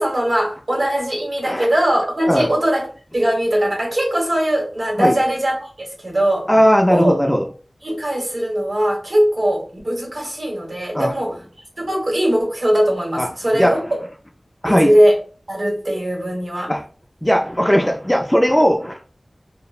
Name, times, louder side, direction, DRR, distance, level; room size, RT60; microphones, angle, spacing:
voice 1, 0.0-2.9 3.1-6.5 6.9-7.2 7.8-11.3 11.8-14.0 14.7-15.2 15.5-16.7, right 1 dB, 55° right, -1 dB, 1.0 m, -20 dB
voice 2, 6.5-7.5 10.9-11.1 13.2-13.8 14.6-14.9 16.7-16.8 17.2-19.0, equal, 10° left, 2 dB, 0.3 m, -17 dB
3.0 x 2.0 x 2.3 m, 0.38 s
wide cardioid pair, 65°, 0 cm